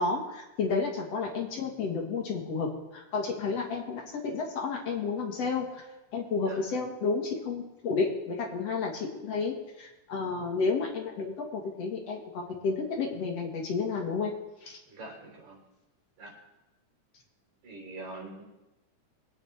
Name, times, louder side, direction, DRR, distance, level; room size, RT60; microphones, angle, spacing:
voice 1, 0.0-5.8 6.1-14.3 14.6-14.8, left 4 dB, 55° left, 1 dB, 2.5 m, -31 dB
voice 2, 14.9-15.6 16.2-16.3 17.6-18.4, right 2 dB, 65° right, -2 dB, 5.2 m, -44 dB
23.5 x 9.2 x 3.5 m, 1.0 s
omnidirectional pair, 3.6 m